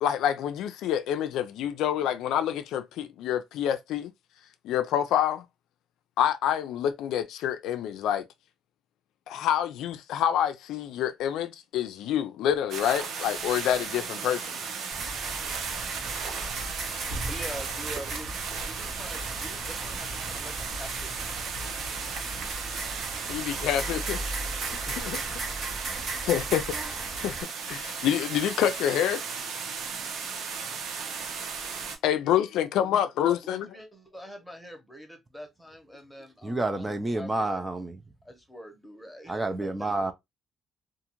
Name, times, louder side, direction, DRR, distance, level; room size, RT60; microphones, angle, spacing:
voice 1, 0.0-4.1 4.6-5.4 6.2-8.2 9.3-14.6 23.3-24.2 24.9-25.2 26.2-27.0 27.2-29.2 32.0-33.7, left 10 dB, 90° left, 0.3 m, -27 dB
sound 1, 12.7-32.0, right 5 dB, 80° right, 0.6 m, -35 dB
sound 2, 14.9-27.4, right 2 dB, 55° right, 1.0 m, -37 dB
voice 2, 16.9-21.4 22.1-22.5 33.4-37.6 38.2-39.7, equal, 5° left, 0.9 m, -45 dB
voice 3, 36.4-38.0 39.3-40.1, right 2 dB, 20° right, 0.5 m, -29 dB
2.5 x 2.4 x 2.9 m
cardioid pair, 90°, 0 cm